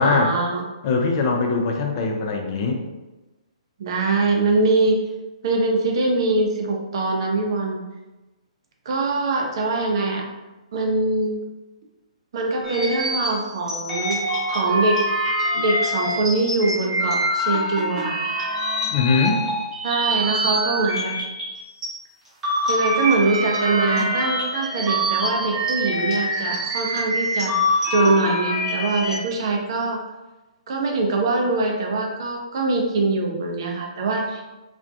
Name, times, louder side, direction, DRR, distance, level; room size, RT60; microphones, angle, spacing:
voice 1, 0.0-0.6 3.8-5.0 5.4-7.8 8.9-10.2 10.7-11.4 12.3-14.2 14.5-15.0 15.5-18.2 19.8-21.2 22.7-27.6 27.9-30.0 30.7-34.4, right 3 dB, 45° right, 1 dB, 0.4 m, -23 dB
voice 2, 0.8-2.8 18.9-19.4, left 4 dB, 40° left, 2 dB, 0.3 m, -21 dB
sound 1, 12.6-21.9 22.3-29.2, equal, 10° right, 0.8 m, -25 dB
2.4 x 2.1 x 2.4 m, 1.1 s
figure-of-eight pair, 125°, 4 cm